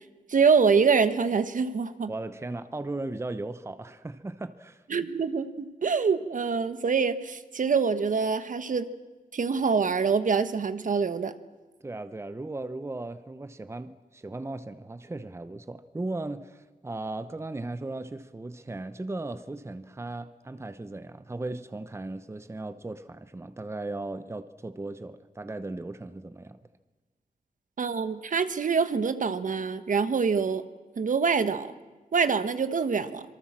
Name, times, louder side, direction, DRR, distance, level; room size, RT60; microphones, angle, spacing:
voice 1, 0.3-2.1 4.9-8.9 9.3-11.3 27.8-30.6 31.0-31.7 32.1-33.2, right 5 dB, 60° right, 1.3 m, -25 dB
voice 2, 2.1-4.8 11.8-26.6, right 2 dB, 20° right, 0.9 m, -37 dB
26.0 x 23.5 x 7.5 m
wide cardioid pair, 145°, 15 cm